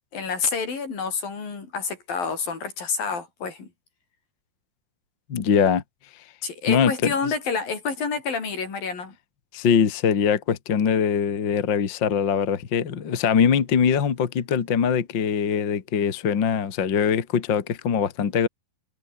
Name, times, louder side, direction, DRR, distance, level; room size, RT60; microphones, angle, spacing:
voice 1, 0.1-3.7 6.4-9.2, left 5 dB, 75° left, 7.2 m, -28 dB
voice 2, 5.3-5.8 6.7-7.1 9.5-18.5, left 7 dB, 40° left, 2.1 m, -22 dB
omnidirectional pair, 4.1 m